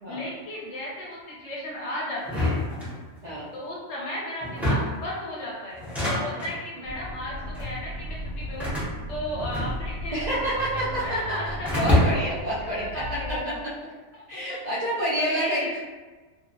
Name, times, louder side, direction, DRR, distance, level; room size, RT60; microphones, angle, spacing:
voice 1, 0.1-2.6 3.5-8.7 9.1-12.2 12.6-13.6 14.1-14.4 15.2-15.8, left 1 dB, 65° left, -4 dB, 0.9 m, -35 dB
sound 1, 2.2-3.4 4.4-5.1 5.7-6.6 7.4-7.8 8.6-10.1 10.4-11.2 11.7-12.4, left 1 dB, ahead, 0.4 m, -26 dB
Accelerating revving vroom, 6.8-13.4, equal, 85° right, 1.0 m, -37 dB
voice 2, 10.1-11.4 11.8-13.5 14.3-15.8, right 1 dB, 55° right, -8 dB, 0.4 m, -28 dB
2.7 x 2.0 x 2.5 m, 1.3 s
omnidirectional pair, 1.4 m